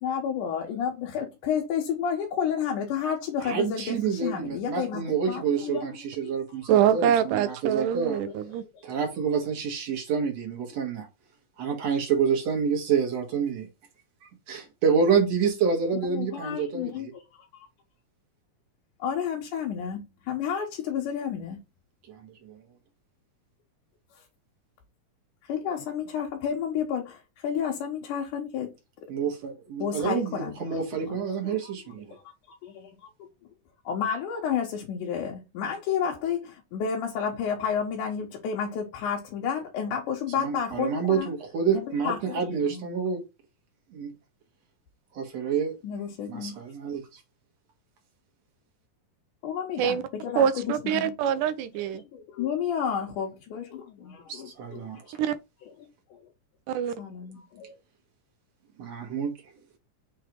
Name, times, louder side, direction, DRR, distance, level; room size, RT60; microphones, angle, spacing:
voice 1, 0.0-6.7 8.6-8.9 16.1-17.7 19.0-21.6 24.1-24.2 25.4-28.7 29.0-29.1 29.8-32.2 32.6-33.1 33.4-33.5 33.8-41.3 41.7-42.4 42.7-42.8 45.8-46.6 49.4-51.3 51.9-54.5 55.6-55.9 57.0-57.8, left 7 dB, 75° left, 2.6 m, -31 dB
voice 2, 3.4-8.2 8.8-11.1 11.6-13.7 14.2-17.1 22.1-22.6 29.1-32.2 40.4-43.2 43.9-44.1 45.1-45.8 46.3-47.2 54.3-55.0 58.8-59.3, right 6 dB, 55° right, 2.5 m, -28 dB
voice 3, 6.7-8.6 49.8-50.0 50.4-52.0 55.2-55.4 56.7-57.0, right 9 dB, 85° right, 2.2 m, -24 dB
6.4 x 3.4 x 4.6 m
omnidirectional pair, 3.7 m